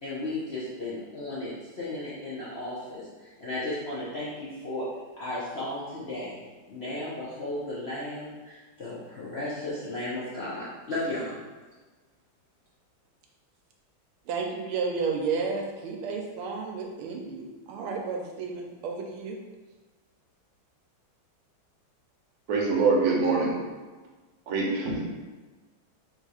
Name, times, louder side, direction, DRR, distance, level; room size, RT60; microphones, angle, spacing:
voice 1, 0.0-4.9 5.1-6.3 6.7-11.4, left 1 dB, 65° left, -9 dB, 0.6 m, -35 dB
voice 2, 14.3-19.4, right 4 dB, 90° right, 0 dB, 1.5 m, -32 dB
voice 3, 22.5-23.6 24.5-25.1, right 4 dB, 55° right, -2 dB, 1.0 m, -24 dB
3.6 x 2.7 x 4.7 m, 1.3 s
omnidirectional pair, 2.3 m